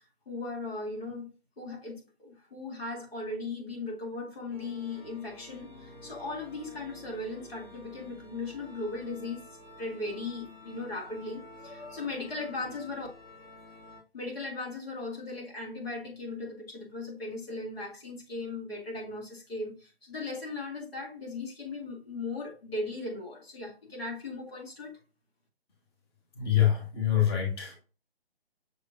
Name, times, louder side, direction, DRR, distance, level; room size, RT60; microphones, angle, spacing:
voice 1, 0.3-1.3 1.6-9.4 9.8-13.1 14.1-25.0, left 3 dB, 70° left, 2.1 m, -38 dB
sound 1, 4.5-14.0, left 2 dB, 45° left, 2.3 m, -50 dB
voice 2, 26.3-27.8, left 11 dB, 25° left, 1.1 m, -25 dB
6.4 x 3.2 x 2.6 m
figure-of-eight pair, 145°, 32 cm